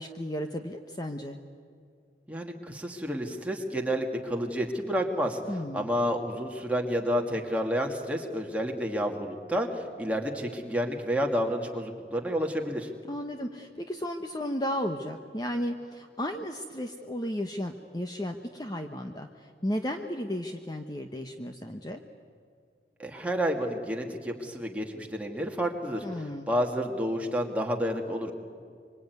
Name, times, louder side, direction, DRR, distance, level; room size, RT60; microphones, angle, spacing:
voice 1, 0.0-1.4 5.5-5.9 13.1-22.0 26.0-26.5, equal, 20° left, 5 dB, 1.0 m, -34 dB
voice 2, 2.3-5.4 5.7-12.9 23.0-28.3, equal, 5° right, 1 dB, 2.3 m, -30 dB
25.0 x 25.0 x 9.5 m, 2.2 s
head